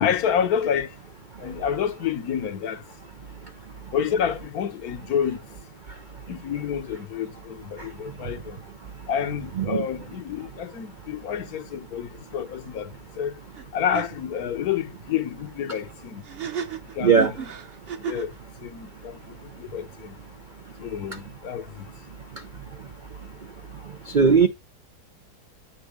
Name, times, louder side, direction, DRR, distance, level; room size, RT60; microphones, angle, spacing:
voice 1, 0.0-0.9 1.4-2.8 3.9-5.4 6.3-8.6 9.1-12.9 13.2-13.3 13.7-16.2 17.0-17.5 18.0-18.3 18.6-19.2 19.6-20.1 20.8-21.8, left 8 dB, 70° left, 1.3 m, -28 dB
sound 1, 13.5-13.7 13.9-14.1 16.2-18.4, right 8 dB, 45° right, 1.0 m, -33 dB
voice 2, 24.1-24.5, right 5 dB, 65° right, 0.4 m, -17 dB
9.3 x 3.7 x 4.9 m
omnidirectional pair, 1.7 m